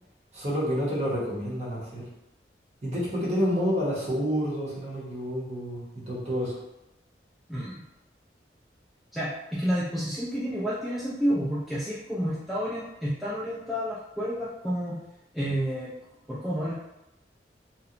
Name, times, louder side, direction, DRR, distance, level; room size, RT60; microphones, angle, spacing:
voice 1, 0.3-2.0 2.8-6.6, equal, 35° right, -5 dB, 0.7 m, -29 dB
voice 2, 9.1-14.9 15.3-15.9 16.3-16.7, equal, ahead, -10 dB, 0.3 m, -30 dB
2.8 x 2.1 x 2.5 m, 0.90 s
head